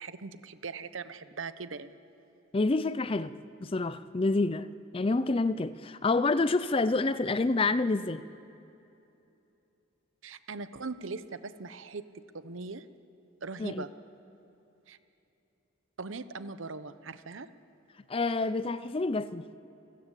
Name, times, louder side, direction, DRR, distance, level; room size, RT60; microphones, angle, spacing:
voice 1, 0.0-1.9 10.2-12.9 13.4-13.9 14.9-15.0 16.0-17.5, right 4 dB, 70° right, 0.9 m, -40 dB
voice 2, 2.5-3.3 3.6-4.7 4.9-8.2 13.6-13.8 18.1-19.6, left 3 dB, 25° left, 0.4 m, -28 dB
29.0 x 14.5 x 8.2 m
head